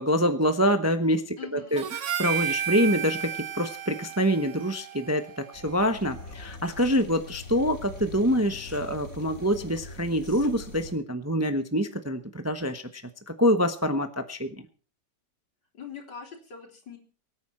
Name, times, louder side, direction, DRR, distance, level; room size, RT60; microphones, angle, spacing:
voice 1, 0.0-1.8 2.2-13.0 13.3-14.5, equal, 15° right, 8 dB, 0.7 m, -26 dB
voice 2, 1.4-1.8 15.7-17.0, left 7 dB, 85° left, 2 dB, 4.2 m, -42 dB
Harmonica, 1.8-6.2, right 10 dB, 55° right, 1.0 m, -33 dB
sound 1, 5.5-10.9, left 2 dB, 50° left, 3.3 m, -43 dB
24.0 x 9.5 x 4.4 m, 0.41 s
omnidirectional pair, 1.9 m